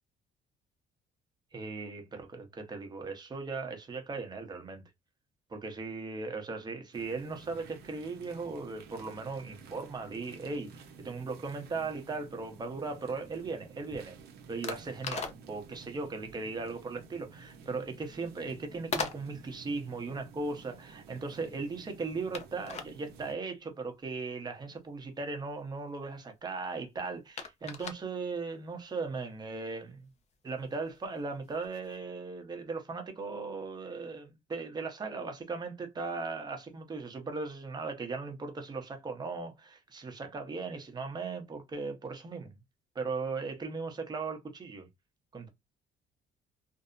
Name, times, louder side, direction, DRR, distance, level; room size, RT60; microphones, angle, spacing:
voice 1, 1.5-4.8 5.5-14.2 14.5-30.1 30.4-42.5 42.9-44.9 45.3-45.5, right 4 dB, 25° right, 0.8 m, -38 dB
sound 1, 6.9-23.4, right 5 dB, 70° right, 0.7 m, -52 dB
sound 2, 12.3-32.0, left 5 dB, 40° left, 0.5 m, -44 dB
2.6 x 2.0 x 2.4 m
cardioid pair, 110°, 17 cm